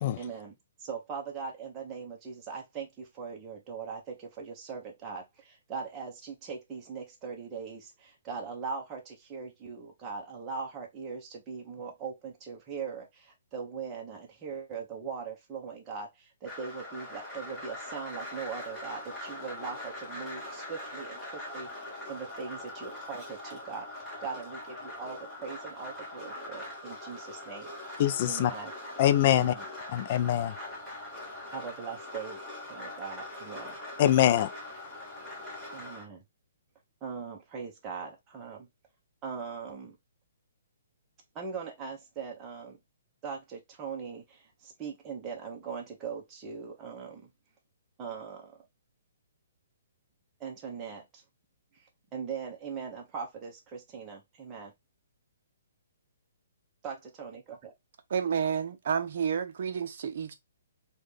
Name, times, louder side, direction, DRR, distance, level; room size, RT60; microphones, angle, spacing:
voice 1, 0.2-21.7 22.1-27.7 28.3-28.7 29.3-29.7 31.5-32.4 32.7-33.7 35.7-36.2 37.0-38.7 39.2-40.0 41.3-42.8 43.2-47.3 48.0-48.6 50.4-51.2 51.8-54.7 56.8-57.7, right 5 dB, 20° right, 0.8 m, -40 dB
sound 1, 16.5-36.0, left 1 dB, 5° left, 1.2 m, -42 dB
voice 2, 28.0-28.5 29.0-29.5 29.9-30.5 34.0-34.5, left 11 dB, 35° left, 0.3 m, -23 dB
voice 3, 58.1-60.3, right 7 dB, 55° right, 0.6 m, -30 dB
3.7 x 2.3 x 3.2 m
hypercardioid pair, 165°, 0 cm